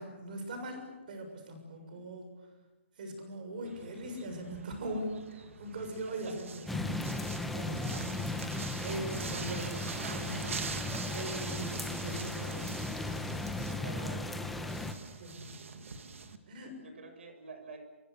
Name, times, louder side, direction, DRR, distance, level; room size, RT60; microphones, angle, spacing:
voice 1, 0.0-2.3 3.0-7.1 7.5-10.8 11.1-14.1 15.2-16.8, right 1 dB, 40° right, 6 dB, 6.9 m, -41 dB
sound 1, 3.6-16.4, right 5 dB, 90° right, 2.5 m, -44 dB
sound 2, 6.7-14.9, left 2 dB, ahead, 0.9 m, -36 dB
voice 2, 13.6-14.2 16.8-17.9, right 4 dB, 60° right, 7 dB, 6.4 m, -48 dB
28.0 x 26.0 x 6.8 m, 1.1 s
hypercardioid pair, 175°, 7 cm